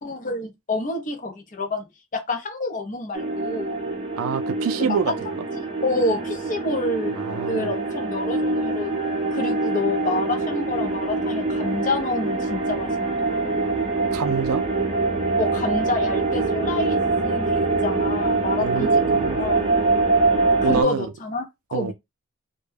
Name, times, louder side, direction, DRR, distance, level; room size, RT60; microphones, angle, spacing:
voice 1, 0.0-1.8 2.1-3.8 4.8-5.1 5.5-7.2 7.5-8.9 9.3-13.4 15.4-18.9 19.4-19.7 20.6-21.4 21.7-21.9, left 2 dB, 35° left, 0.6 m, -28 dB
sound 1, 3.1-20.8, right 3 dB, 25° right, 0.6 m, -24 dB
voice 2, 4.2-5.3 7.1-7.7 14.1-14.6 18.6-19.4 20.6-21.1 21.7-21.9, right 6 dB, 75° right, 0.4 m, -27 dB
2.1 x 2.1 x 3.2 m
head